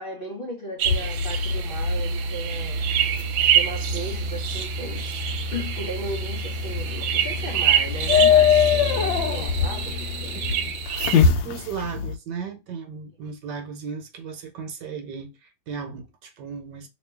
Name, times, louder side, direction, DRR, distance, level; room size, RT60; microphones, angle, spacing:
voice 1, 0.0-2.8 3.5-5.1 5.5-10.3 10.6-10.7 12.0-12.1, right 1 dB, 45° left, 0.7 m, -36 dB
sound 1, 0.8-11.2, right 9 dB, 85° right, 1.4 m, -27 dB
sound 2, 0.9-12.2, left 5 dB, 80° left, 1.3 m, -24 dB
voice 2, 11.1-16.9, right 6 dB, 65° right, 1.4 m, -36 dB
3.1 x 2.9 x 3.3 m
omnidirectional pair, 2.1 m